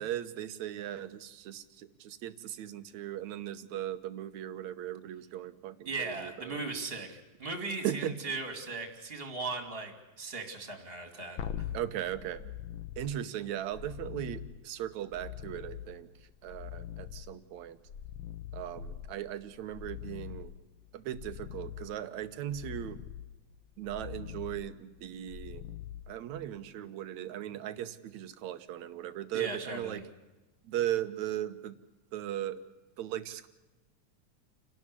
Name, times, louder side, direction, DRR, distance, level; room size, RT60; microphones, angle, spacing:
voice 1, 0.0-6.6 7.8-8.1 11.7-12.5 13.0-17.8 18.5-20.5 20.9-23.0 23.8-25.6 26.1-30.0 30.6-31.8 32.1-32.6 33.0-33.5, right 12 dB, 70° right, 11 dB, 2.3 m, -38 dB
voice 2, 5.9-11.7 29.3-30.0, right 3 dB, 20° right, 6 dB, 2.7 m, -38 dB
sound 1, 11.4-26.7 29.8-29.9, left 10 dB, 70° left, 1.2 m, -44 dB
29.5 x 12.0 x 9.8 m, 1.1 s
omnidirectional pair, 3.5 m